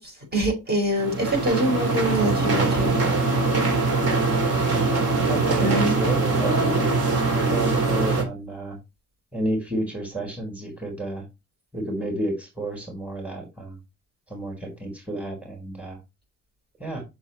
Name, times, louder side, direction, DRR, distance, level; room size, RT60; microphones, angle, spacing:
voice 1, 0.0-3.0 5.6-6.0, right 1 dB, 35° right, 5.0 m, -25 dB
sound 1, 1.0-8.2, right 3 dB, 55° right, 3.7 m, -22 dB
voice 2, 5.2-6.9 7.5-8.8 9.3-11.2 11.7-13.8 14.3-16.0 16.8-17.0, right 1 dB, 5° right, 4.6 m, -31 dB
7.1 x 6.3 x 4.3 m
cardioid pair, 90°, 30 cm